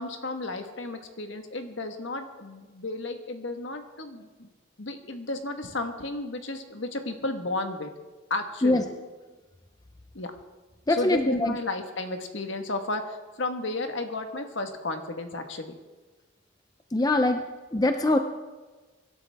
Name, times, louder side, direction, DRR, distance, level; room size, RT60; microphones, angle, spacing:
voice 1, 0.0-4.5 4.8-7.9 8.3-9.1 10.1-10.3 10.9-15.7, left 2 dB, 60° left, 6 dB, 1.4 m, -33 dB
voice 2, 10.9-11.5 16.9-17.5 17.7-18.2, left 2 dB, 20° left, 6 dB, 0.6 m, -23 dB
24.5 x 12.0 x 3.5 m, 1.3 s
head